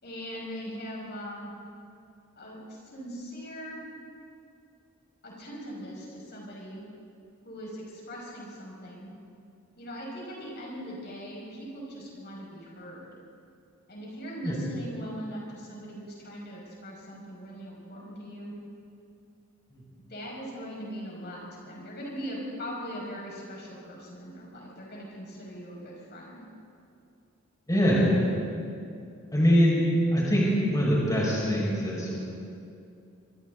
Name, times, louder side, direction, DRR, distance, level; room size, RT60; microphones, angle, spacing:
voice 1, 0.0-1.5 2.4-3.8 5.2-6.8 7.4-9.1 9.8-13.1 13.9-18.5 20.1-26.4, equal, 50° left, -4 dB, 6.1 m, -40 dB
voice 2, 27.7-28.3 29.3-29.8 30.1-32.3, equal, 15° left, -6 dB, 5.8 m, -23 dB
26.5 x 25.0 x 4.0 m, 2.5 s
head